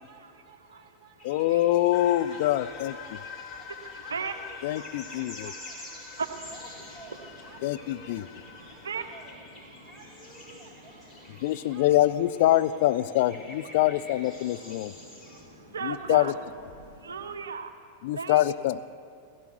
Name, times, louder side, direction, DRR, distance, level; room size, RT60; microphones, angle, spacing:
voice 1, 0.0-1.5 1.8-1.9 2.3-4.8 5.1-8.3 8.7-9.4 9.8-11.3 11.7-12.6, right 4 dB, 20° right, -2 dB, 3.0 m, -53 dB
voice 2, 1.2-3.0 4.6-5.5 7.6-8.3 11.4-14.9 15.8-16.3 18.0-18.8, left 14 dB, 50° left, 13 dB, 0.5 m, -25 dB
sound 1, 1.2-15.5, left 1 dB, 10° left, 5.0 m, -49 dB
sound 2, 1.9-9.3, left 7 dB, 35° left, 1.1 m, -45 dB
voice 3, 4.7-6.5 8.0-8.1 8.5-9.0 9.7-9.9 14.7-16.3 16.8-17.8 18.1-18.4, right 5 dB, 70° right, 8 dB, 0.9 m, -37 dB
sound 3, 6.2-17.4, left 1 dB, 85° left, 3.7 m, -53 dB
16.5 x 16.0 x 4.7 m, 2.3 s
figure-of-eight pair, 90°, 0 cm